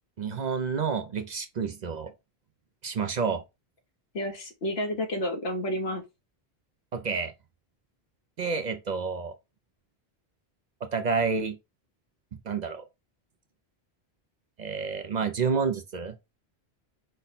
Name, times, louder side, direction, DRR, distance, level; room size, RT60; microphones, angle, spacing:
voice 1, 0.2-2.1 2.8-3.4 6.9-7.3 8.4-9.3 10.8-11.6 12.5-12.8 14.6-16.2, right 5 dB, 50° right, 0.6 m, -29 dB
voice 2, 4.1-6.0, left 1 dB, 70° left, 1.3 m, -30 dB
5.3 x 2.2 x 4.1 m
omnidirectional pair, 1.1 m